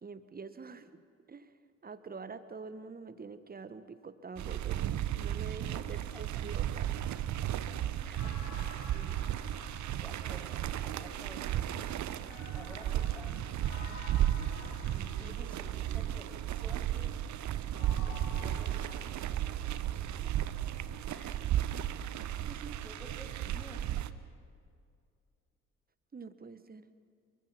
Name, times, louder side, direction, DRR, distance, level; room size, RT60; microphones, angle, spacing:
voice 1, 0.0-1.0 1.3-1.5 1.8-4.9 5.2-6.9 22.4-22.8 26.1-26.9, right 4 dB, 25° right, 12 dB, 1.4 m, -46 dB
sound 1, 4.4-24.1, right 11 dB, 45° right, 1.1 m, -34 dB
voice 2, 5.9-6.4 8.0-9.2 9.9-11.9 12.5-13.6 14.8-17.1 17.8-20.1 21.1-21.4 22.8-23.9, equal, 5° left, 2 dB, 6.0 m, -53 dB
sound 2, 8.1-11.0 12.3-16.1 17.7-19.1, left 5 dB, 75° left, 2.1 m, -51 dB
28.0 x 24.5 x 5.6 m, 2.3 s
figure-of-eight pair, 45°, 39 cm